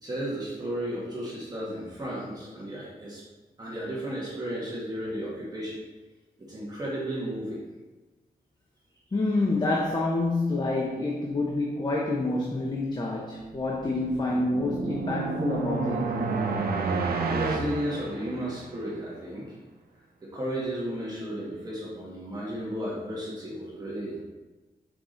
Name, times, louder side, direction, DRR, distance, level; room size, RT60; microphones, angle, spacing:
voice 1, 0.0-3.2 3.6-5.8 6.4-7.6 17.2-19.6 20.2-24.2, right 1 dB, 25° right, -7 dB, 1.6 m, -34 dB
voice 2, 9.1-16.1, left 2 dB, 30° left, -2 dB, 0.8 m, -27 dB
sound 1, 13.8-18.8, right 4 dB, 85° right, 0.7 m, -30 dB
6.1 x 4.8 x 3.9 m, 1.2 s
wide cardioid pair, 135°, 15 cm